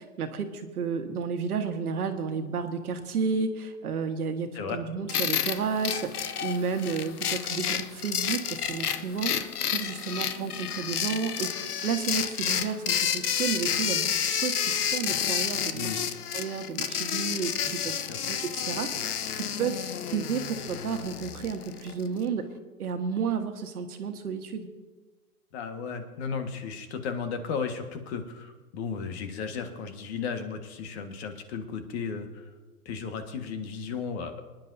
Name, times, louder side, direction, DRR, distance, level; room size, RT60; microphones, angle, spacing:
voice 1, 0.0-9.3 9.7-16.0 16.3-22.4 22.8-24.7, right 6 dB, 75° right, 6 dB, 1.6 m, -32 dB
sound 1, 5.1-22.1, left 8 dB, 80° left, 1.0 m, -30 dB
voice 2, 25.5-32.5 32.8-34.4, left 5 dB, 45° left, 6 dB, 1.7 m, -35 dB
24.5 x 10.5 x 2.7 m, 1.3 s
hypercardioid pair, 135°, 45 cm